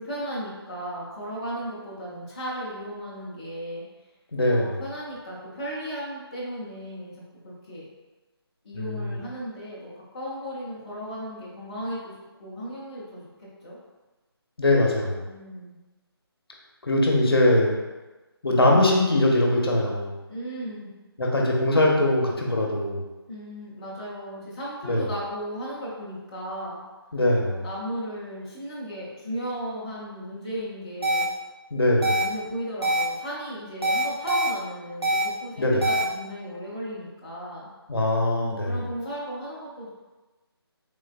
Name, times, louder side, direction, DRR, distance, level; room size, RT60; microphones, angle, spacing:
voice 1, 0.0-3.8 4.5-7.1 7.4-7.8 8.6-12.1 12.4-13.8 15.2-15.8 20.3-20.9 23.3-26.8 27.5-31.3 32.0-37.7 38.4-39.9, equal, 15° left, -9 dB, 0.4 m, -35 dB
voice 2, 4.3-4.8 8.7-9.2 14.6-15.2 16.8-17.7 18.4-20.1 21.2-23.0 24.8-25.1 27.1-27.7 31.7-32.2 35.6-35.9 37.9-38.9, left 1 dB, 65° left, -1 dB, 0.7 m, -22 dB
sound 1, 31.0-31.2 32.0-32.2 32.8-33.0 33.8-34.5 35.0-35.2 35.8-36.0, right 1 dB, 75° right, 0.8 m, -23 dB
3.5 x 3.1 x 2.2 m, 1.2 s
figure-of-eight pair, 155°, 14 cm